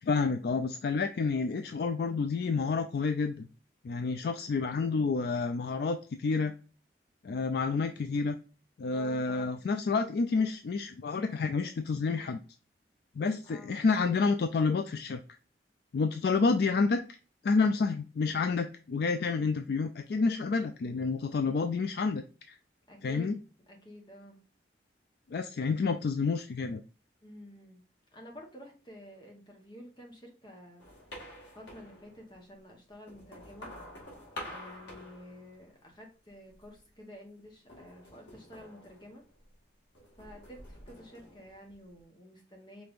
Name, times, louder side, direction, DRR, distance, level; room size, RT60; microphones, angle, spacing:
voice 1, 0.0-3.5 3.8-6.5 7.2-8.4 8.8-12.4 13.2-15.2 15.9-17.0 17.4-22.2 22.5-22.6 23.0-23.4 25.3-26.8, left 4 dB, 60° left, 8 dB, 0.3 m, -29 dB
voice 2, 8.9-9.7 13.4-13.8 22.9-23.4 23.7-24.4 25.7-25.8 27.2-27.8 28.1-30.9 31.5-33.7 34.4-39.2 40.2-42.8, left 1 dB, 25° left, 1 dB, 1.1 m, -50 dB
sound 1, 30.8-32.4 32.9-35.9 36.3-36.9 37.7-39.6 39.9-42.0, left 1 dB, 90° left, 1.7 m, -48 dB
5.1 x 3.3 x 2.5 m, 0.36 s
head